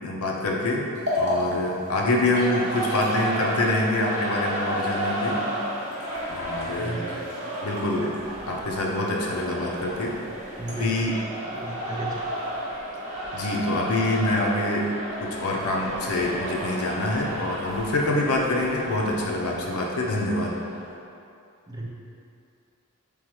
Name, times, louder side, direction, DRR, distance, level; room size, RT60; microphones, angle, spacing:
voice 1, 0.0-0.8 1.2-5.4 6.3-7.0 7.6-8.1 8.5-10.1 10.8-11.1 13.3-20.6, left 2 dB, 90° left, -2 dB, 0.6 m, -25 dB
sound 1, 0.9-10.8, left 1 dB, 55° right, 1.0 m, -36 dB
sound 2, 2.3-20.9, right 1 dB, 35° right, 0.9 m, -33 dB
voice 2, 6.8-7.2 10.6-11.1 11.5-12.2 21.7-21.9, right 1 dB, 20° right, -3 dB, 0.5 m, -34 dB
4.2 x 3.6 x 3.1 m, 2.7 s
head